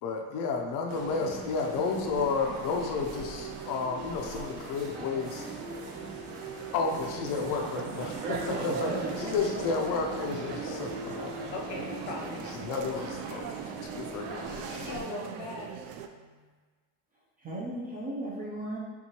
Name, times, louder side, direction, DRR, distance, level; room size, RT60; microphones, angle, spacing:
voice 1, 0.0-5.5 6.7-11.1 12.6-13.4 13.8-14.5, left 4 dB, 45° left, 2 dB, 0.5 m, -31 dB
sound 1, 0.9-15.0, right 3 dB, 60° right, 1.0 m, -39 dB
sound 2, 7.2-16.1, right 8 dB, 85° right, 0.5 m, -42 dB
voice 2, 8.6-9.1 17.4-18.8, right 1 dB, 20° right, -5 dB, 0.3 m, -37 dB
voice 3, 11.5-12.4 13.9-14.1 14.5-15.7, left 3 dB, 85° left, -1 dB, 1.1 m, -40 dB
4.5 x 3.6 x 2.8 m, 1.4 s
cardioid pair, 155°, 47 cm